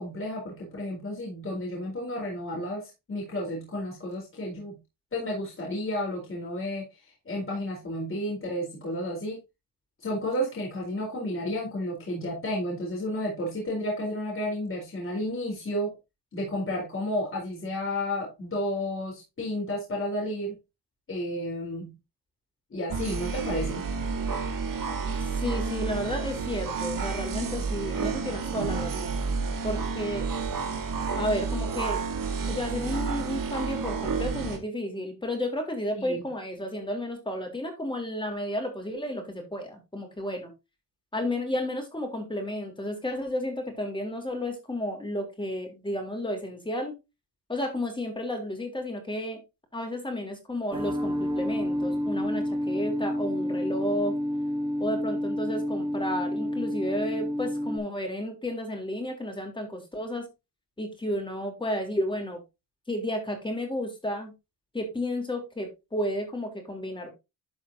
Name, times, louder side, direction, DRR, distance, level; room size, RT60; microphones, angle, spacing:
voice 1, 0.0-4.8 5.1-6.9 7.3-9.4 10.0-15.9 16.3-20.5 21.1-21.9 22.7-23.8 36.0-36.3, left 1 dB, 30° left, -2 dB, 4.1 m, -32 dB
sound 1, 22.9-34.6, right 4 dB, 50° right, 2.1 m, -30 dB
voice 2, 25.2-29.2 29.6-30.3 31.1-32.0 32.5-40.5 41.1-46.9 47.5-49.4 49.7-54.1 54.8-60.3 60.8-62.4 62.9-64.3 64.7-67.1, left 1 dB, 10° left, 2 dB, 3.7 m, -32 dB
sound 2, 50.7-57.8, equal, 10° right, 3.1 m, -29 dB
12.0 x 5.6 x 2.8 m, 0.24 s
cardioid pair, 110°, 42 cm